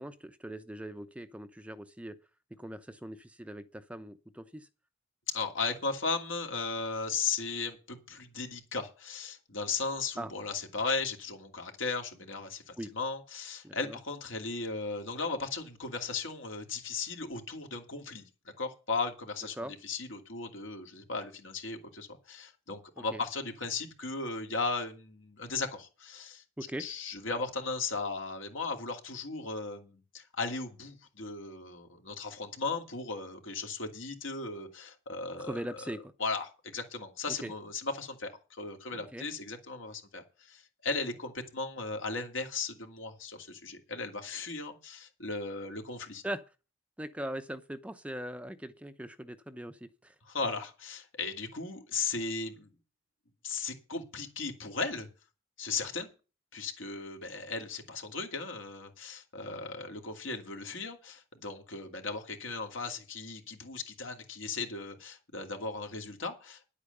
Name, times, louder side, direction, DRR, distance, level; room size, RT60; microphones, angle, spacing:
voice 1, 0.0-2.2 2.5-4.7 10.2-10.3 12.8-12.9 13.6-14.0 19.6-19.7 23.0-23.2 26.6-26.9 35.4-36.1 37.3-37.5 38.9-39.3 46.2-46.4 47.0-50.1, right 1 dB, 5° right, 0.7 m, -40 dB
voice 2, 5.3-18.2 18.6-26.4 26.8-35.6 36.2-46.2 50.3-52.7 53.4-55.1 55.6-56.1 56.5-66.7, left 4 dB, 70° left, 2.7 m, -36 dB
10.5 x 8.5 x 6.7 m
head